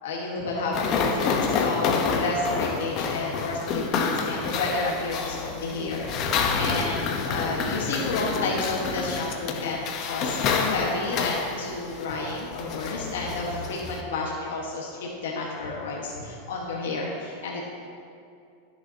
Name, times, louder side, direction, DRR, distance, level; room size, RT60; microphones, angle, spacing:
voice 1, 0.0-17.7, left 3 dB, 85° left, -2 dB, 1.4 m, -31 dB
sound 1, 0.7-14.0, left 5 dB, 40° left, 0.9 m, -28 dB
15.5 x 6.8 x 2.8 m, 2.5 s
supercardioid pair, 135°, 0 cm